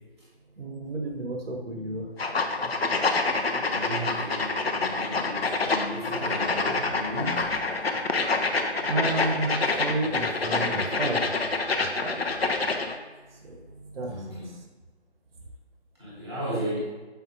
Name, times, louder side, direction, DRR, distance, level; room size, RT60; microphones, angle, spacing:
voice 1, 0.6-2.1 8.9-11.3 11.8-12.2 13.4-13.6 13.9-14.2, right 2 dB, 60° right, 2 dB, 0.8 m, -31 dB
sound 1, 2.2-12.9, left 3 dB, 65° left, 0.7 m, -27 dB
voice 2, 3.6-7.4 14.0-14.6 16.0-16.8, equal, ahead, -17 dB, 0.8 m, -34 dB
6.9 x 5.6 x 2.4 m, 1.3 s
figure-of-eight pair, 155°, 33 cm